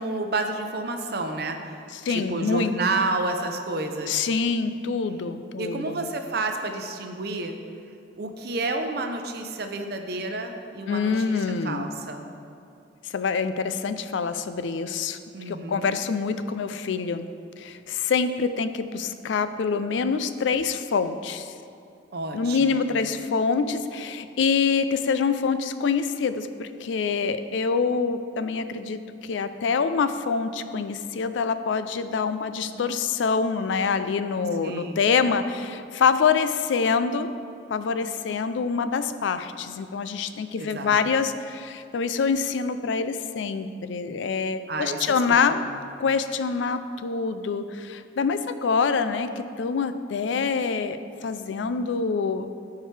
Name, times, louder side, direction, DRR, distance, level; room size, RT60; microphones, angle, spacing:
voice 1, 0.0-1.8 2.1-4.2 5.6-7.6 8.2-12.3 15.3-15.9 22.1-22.9 34.6-35.0 40.1-40.2 40.6-41.0 44.7-45.8, right 2 dB, 55° right, 5 dB, 0.6 m, -30 dB
voice 2, 1.9-2.7 4.1-6.1 10.9-11.9 13.1-15.2 15.5-17.3 17.6-21.5 22.3-29.0 29.3-37.3 37.7-45.7 46.0-52.5, left 5 dB, 75° left, 11 dB, 0.4 m, -25 dB
13.5 x 4.7 x 3.3 m, 2.5 s
head